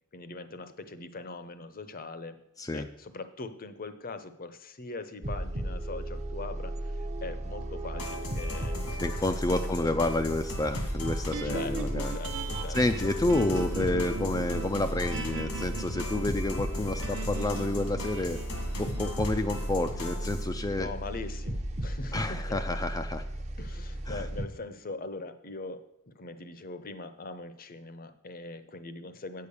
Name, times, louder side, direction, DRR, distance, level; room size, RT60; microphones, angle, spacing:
voice 1, 0.1-2.4 2.7-9.2 9.6-9.9 11.4-12.8 20.7-22.6 23.6-29.5, left 3 dB, 40° left, 11 dB, 0.8 m, -41 dB
sound 1, 5.2-24.4, right 1 dB, 30° right, 0.8 m, -35 dB
sound 2, 7.9-20.4, left 2 dB, 90° left, 2.2 m, -39 dB
voice 2, 9.0-12.1 12.7-18.4 18.8-20.9 22.1-23.2 24.1-24.2, left 2 dB, 15° left, 7 dB, 0.4 m, -29 dB
sound 3, 11.3-23.6, right 4 dB, 60° right, 1.0 m, -41 dB
9.0 x 6.6 x 7.0 m, 0.79 s
head